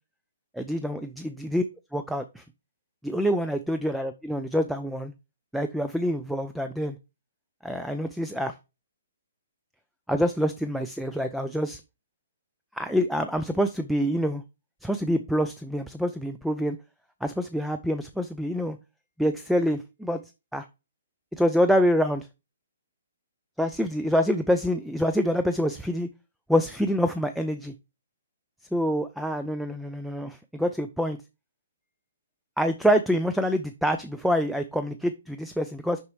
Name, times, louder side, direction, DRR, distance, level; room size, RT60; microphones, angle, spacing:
voice 1, 0.5-1.6 1.9-2.4 3.0-5.1 5.5-7.0 7.6-8.5 10.1-11.8 12.7-14.4 14.8-16.8 17.2-18.8 19.2-20.2 20.5-20.7 21.3-22.3 23.6-26.1 26.5-27.7 28.7-31.2 32.6-36.0, equal, ahead, 8 dB, 0.3 m, -26 dB
6.6 x 5.4 x 3.1 m, 0.28 s
figure-of-eight pair, 125°, 0 cm